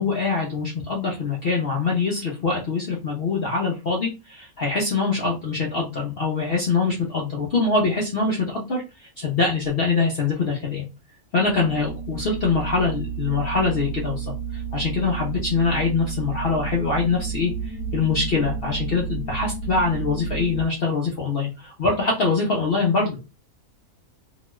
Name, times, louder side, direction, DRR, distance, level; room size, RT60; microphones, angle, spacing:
voice 1, 0.0-10.8 11.3-17.5 17.9-23.3, left 4 dB, 55° left, -2 dB, 0.7 m, -24 dB
sound 1, 11.4-20.6, right 6 dB, 70° right, 1.1 m, -32 dB
2.9 x 2.3 x 3.0 m, 0.28 s
omnidirectional pair, 1.6 m